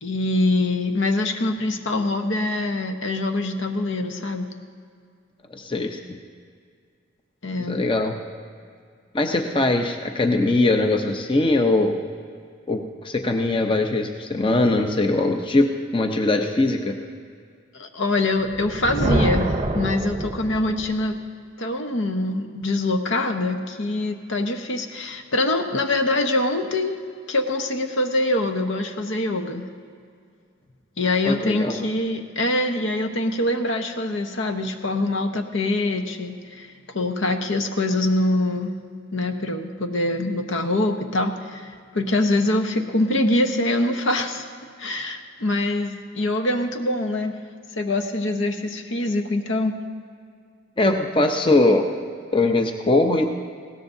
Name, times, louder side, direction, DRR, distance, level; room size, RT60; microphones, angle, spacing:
voice 1, 0.0-4.5 7.4-7.8 17.7-21.2 21.6-26.9 27.3-29.7 31.0-36.7 36.9-38.7 39.1-44.5 44.8-47.4 47.7-49.8, left 2 dB, 75° left, 5 dB, 1.0 m, -24 dB
voice 2, 5.5-6.0 7.7-8.1 9.1-12.0 12.7-17.0 31.2-31.8 50.8-51.9 52.3-53.3, left 2 dB, 25° left, 4 dB, 0.7 m, -21 dB
Thunder, 18.5-21.1, right 2 dB, 30° right, 0.6 m, -25 dB
20.5 x 17.0 x 2.7 m, 2.2 s
head